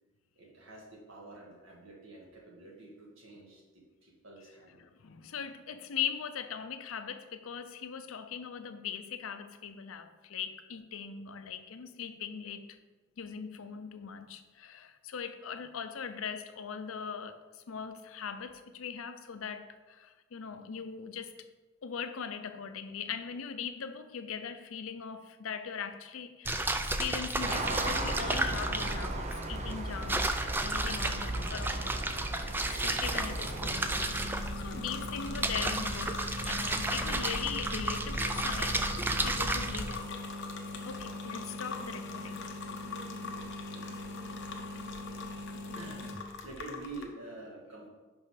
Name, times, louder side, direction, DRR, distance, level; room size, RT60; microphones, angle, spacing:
voice 1, 0.4-3.6 4.0-4.8 43.7-44.1 45.5-46.0 46.4-47.9, right 2 dB, 65° right, -1 dB, 1.6 m, -47 dB
voice 2, 4.8-12.8 13.2-21.3 21.8-32.2 32.8-40.2 40.8-42.5, left 7 dB, 75° left, 9 dB, 0.5 m, -40 dB
sound 1, 26.4-40.0, right 2 dB, 10° right, 0.3 m, -33 dB
sound 2, 27.4-34.0, right 2 dB, 35° right, 0.7 m, -38 dB
sound 3, 34.0-47.0, left 3 dB, 60° left, 0.9 m, -40 dB
5.6 x 5.5 x 5.0 m, 1.3 s
head